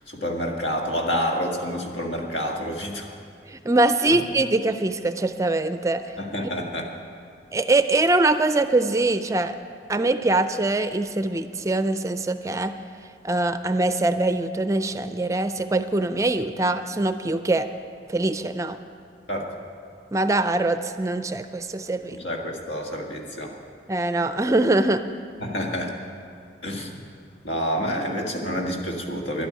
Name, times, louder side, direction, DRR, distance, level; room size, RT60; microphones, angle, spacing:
voice 1, 0.1-3.1 4.0-4.2 6.2-6.9 19.3-19.5 22.2-23.5 25.4-25.9 26.6-26.9 27.4-29.5, equal, 85° left, 1 dB, 1.9 m, -28 dB
voice 2, 3.5-6.0 7.5-9.6 9.9-12.7 13.2-17.7 18.1-18.8 20.1-22.2 23.9-25.0, right 2 dB, 15° right, 10 dB, 0.4 m, -23 dB
11.5 x 9.0 x 9.7 m, 2.3 s
head